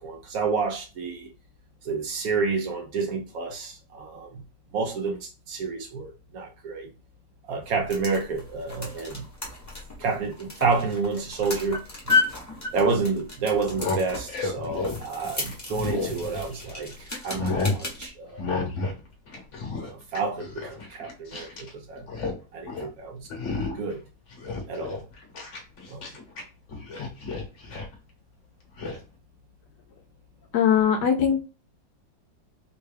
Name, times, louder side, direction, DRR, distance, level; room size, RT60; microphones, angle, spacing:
voice 1, 0.0-1.3 1.8-4.4 4.7-6.9 7.5-9.3 10.0-11.8 12.7-18.6 19.8-22.1 22.5-23.3 23.7-24.0 24.7-25.0 25.9-26.1, right 4 dB, 90° right, 0.7 m, -29 dB
sound 1, 7.6-18.1, left 4 dB, 20° left, 0.4 m, -33 dB
sound 2, 13.7-16.8 17.1-17.8 18.4-19.0 19.3-21.7 22.0-22.4 22.7-22.9 23.3-23.9 24.3-26.4 26.7-27.9 28.8-29.0, left 3 dB, 50° left, 1.1 m, -31 dB
voice 2, 30.5-31.5, left 8 dB, 70° left, 1.0 m, -21 dB
4.4 x 2.2 x 3.3 m
omnidirectional pair, 2.1 m